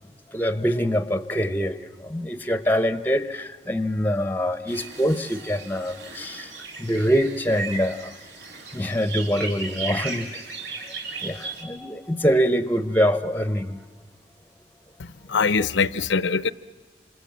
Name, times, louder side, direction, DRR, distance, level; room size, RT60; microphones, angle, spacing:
voice 1, 0.3-6.5 6.8-8.1 8.7-10.3 11.2-13.8, equal, 10° left, 0.8 m, -24 dB
sound 1, 4.7-11.6, right 4 dB, 70° right, 3.6 m, -36 dB
voice 2, 15.3-16.5, left 5 dB, 85° left, 0.7 m, -22 dB
27.5 x 27.0 x 7.4 m
head